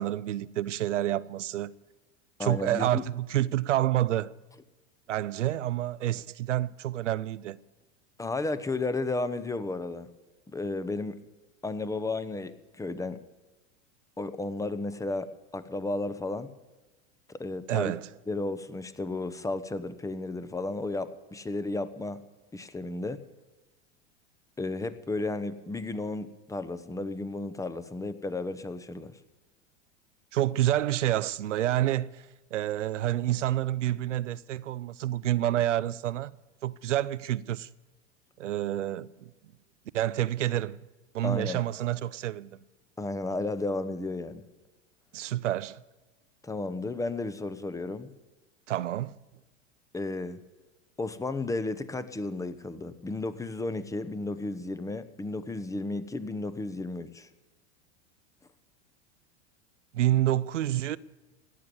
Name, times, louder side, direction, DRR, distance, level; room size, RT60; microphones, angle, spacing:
voice 1, 0.0-1.7 2.4-4.3 5.1-7.6 17.7-18.1 30.3-32.2 32.5-36.3 36.6-37.7 38.4-39.3 39.9-40.8 41.1-42.6 45.1-45.8 48.7-49.2 59.9-61.0, right 13 dB, 90° right, 0.6 m, -28 dB
voice 2, 2.4-3.0 8.2-10.1 10.5-11.2 11.6-13.2 14.2-16.5 17.4-17.9 18.3-22.2 22.5-23.2 24.6-29.1 41.2-41.6 43.0-44.4 46.4-48.1 49.9-50.4 51.0-57.3, left 2 dB, 10° left, 0.9 m, -33 dB
16.5 x 10.5 x 7.0 m
hypercardioid pair, 95°, 36 cm